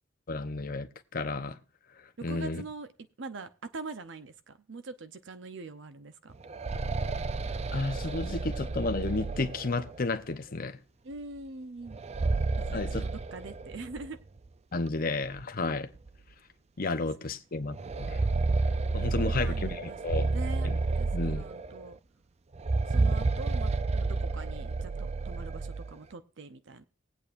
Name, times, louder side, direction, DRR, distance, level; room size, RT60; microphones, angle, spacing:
voice 1, 0.3-1.6 2.2-2.6 7.7-10.8 12.7-13.1 14.7-15.9 16.8-18.2 18.9-20.3 20.6-20.8 21.1-21.4, left 3 dB, 50° left, 0.7 m, -32 dB
voice 2, 2.3-2.9 3.2-6.3 11.0-12.0 12.7-14.2 19.2-22.0 22.9-26.8, right 3 dB, 65° right, 0.7 m, -43 dB
sound 1, 6.3-10.1 11.9-14.1 14.4-14.5 15.4-15.5 16.0-16.1 17.7-21.9 22.5-25.9, right 3 dB, 35° right, 0.5 m, -30 dB
20.0 x 8.6 x 2.5 m
head